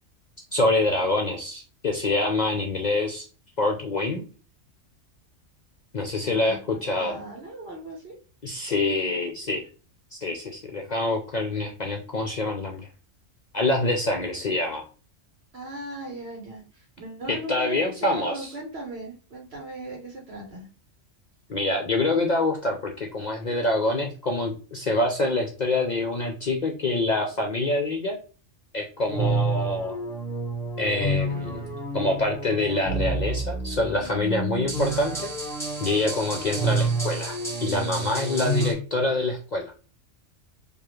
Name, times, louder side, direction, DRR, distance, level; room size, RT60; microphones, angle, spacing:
voice 1, 0.5-3.3 3.6-4.2 5.9-7.2 8.4-9.6 10.1-12.9 13.5-14.8 17.3-18.5 21.5-28.2 28.7-30.0 30.8-31.7 31.9-35.3 35.8-39.7, left 2 dB, 55° left, 2 dB, 0.5 m, -26 dB
voice 2, 6.2-8.1 15.5-20.7, right 1 dB, 55° right, -1 dB, 1.2 m, -38 dB
sound 1, 29.1-38.7, right 2 dB, ahead, 1.2 m, -29 dB
4.8 x 2.4 x 3.0 m, 0.37 s
omnidirectional pair, 1.3 m